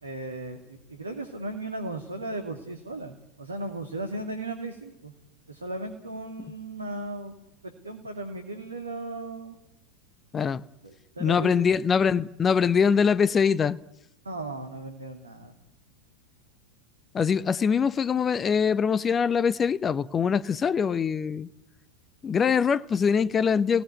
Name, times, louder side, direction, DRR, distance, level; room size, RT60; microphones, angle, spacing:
voice 1, 0.0-5.1 5.5-7.4 7.6-9.6 10.8-11.5 14.2-15.5, right 2 dB, 75° right, 2.6 m, -36 dB
voice 2, 10.3-10.6 11.2-13.8 17.1-21.5 22.2-23.8, left 6 dB, 20° left, 0.8 m, -23 dB
26.0 x 18.0 x 9.5 m
figure-of-eight pair, 90°, 0 cm